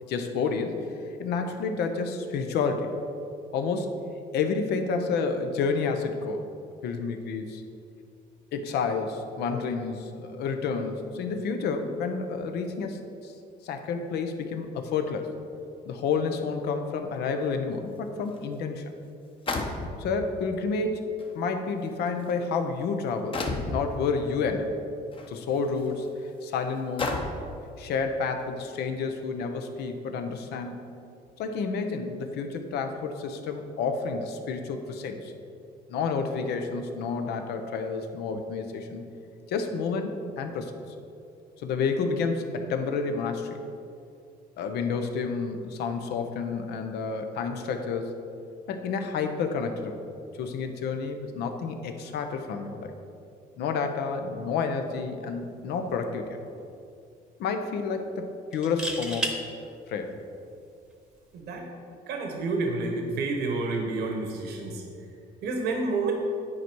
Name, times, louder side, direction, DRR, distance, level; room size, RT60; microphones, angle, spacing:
voice 1, 0.1-0.8 1.2-2.9 3.5-3.9 4.3-6.5 6.8-7.6 8.5-13.3 13.6-15.3 15.9-18.8 20.0-21.1 21.3-24.7 25.3-27.3 27.8-30.8 31.4-35.3 35.9-39.0 39.5-40.7 41.6-43.6 44.6-48.1 48.7-50.0 50.4-52.9 53.6-56.4 57.4-59.3 59.9-60.2, left 5 dB, 75° left, 6 dB, 0.8 m, -30 dB
sound 1, 18.4-18.5 19.5-20.3 21.2-21.3 22.1-22.3 23.3-23.8 25.1-25.3 25.9-26.0 27.0-27.5, left 2 dB, 30° left, 0.9 m, -30 dB
sound 2, 55.7-55.9 56.3-56.4 58.5-59.4 61.2-61.4, right 2 dB, 5° right, 1.0 m, -31 dB
voice 2, 61.3-61.7 62.1-64.8 65.4-66.1, right 3 dB, 75° right, 2 dB, 1.3 m, -29 dB
9.9 x 4.7 x 4.6 m, 2.5 s
cardioid pair, 110°, 17 cm